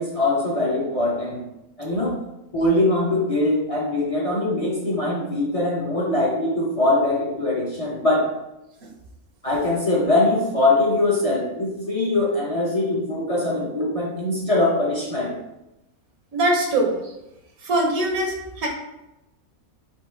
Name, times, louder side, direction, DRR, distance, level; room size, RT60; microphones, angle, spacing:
voice 1, 0.0-1.4 1.8-2.2 2.5-8.3 9.4-15.3, left 2 dB, 35° left, -3 dB, 0.6 m, -22 dB
voice 2, 16.3-17.1 17.6-18.7, right 1 dB, 80° right, 2 dB, 1.3 m, -22 dB
4.5 x 2.5 x 4.4 m, 0.93 s
omnidirectional pair, 1.5 m